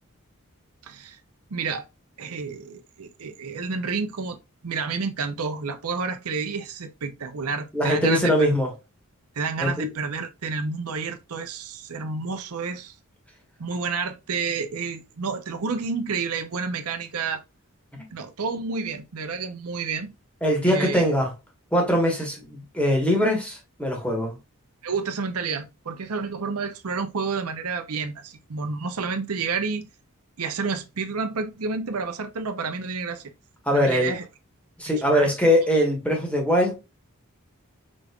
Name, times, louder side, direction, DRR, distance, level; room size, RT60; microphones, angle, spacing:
voice 1, 0.8-1.2 1.5-1.8 2.2-4.4 4.6-8.3 9.4-13.0 13.6-17.4 18.1-20.1 20.6-21.0 24.8-29.9 30.4-33.3 33.7-34.2 35.1-35.3, right 4 dB, 85° right, 0.7 m, -30 dB
voice 2, 7.7-8.7 9.6-9.9 17.9-18.0 20.4-21.3 21.7-24.4 33.6-34.1 34.8-36.7, equal, 5° left, 1.2 m, -22 dB
5.1 x 3.6 x 2.3 m
head